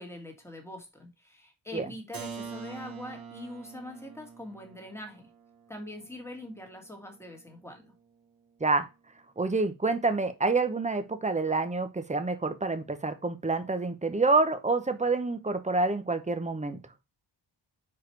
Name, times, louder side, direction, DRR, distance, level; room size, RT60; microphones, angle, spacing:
voice 1, 0.0-5.3 5.7-7.9, left 1 dB, 5° left, 2.0 m, -43 dB
Keyboard (musical), 2.1-7.7, right 5 dB, 50° right, 1.4 m, -45 dB
voice 2, 9.4-16.8, right 3 dB, 15° right, 0.8 m, -27 dB
4.7 x 4.7 x 4.6 m
wide cardioid pair, 105°, 46 cm